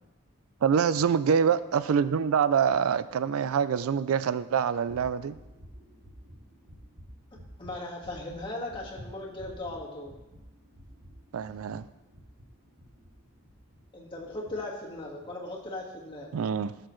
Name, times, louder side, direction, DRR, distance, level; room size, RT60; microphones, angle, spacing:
voice 1, 0.6-5.4 11.3-11.8 16.3-16.7, right 7 dB, 85° right, 0.4 m, -25 dB
sound 1, 4.9-13.8 14.2-14.5 14.9-15.2, equal, 40° right, 1.8 m, -50 dB
voice 2, 7.6-10.1 13.9-16.3, left 2 dB, 25° left, 1.7 m, -38 dB
15.0 x 6.7 x 3.1 m
head